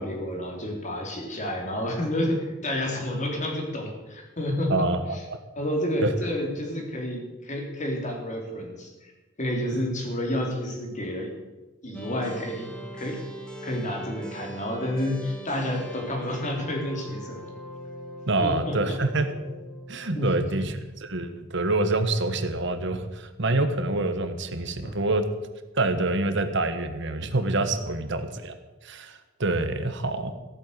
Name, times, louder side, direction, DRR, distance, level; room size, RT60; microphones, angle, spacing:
voice 1, 0.0-4.7 5.1-5.2 5.6-9.1 9.4-11.3 11.8-13.2 13.6-17.5 18.4-19.0 20.2-20.3 24.8-25.0, left 1 dB, 40° left, 1 dB, 3.5 m, -30 dB
voice 2, 4.7-5.0 5.3-5.4 6.0-6.1 9.8-9.9 18.3-19.3 19.9-25.3 25.7-28.5 28.8-30.3, right 2 dB, 65° right, 9 dB, 1.3 m, -26 dB
sound 1, 11.9-21.3, equal, 5° left, 2.9 m, -41 dB
15.0 x 9.0 x 8.1 m, 1.1 s
head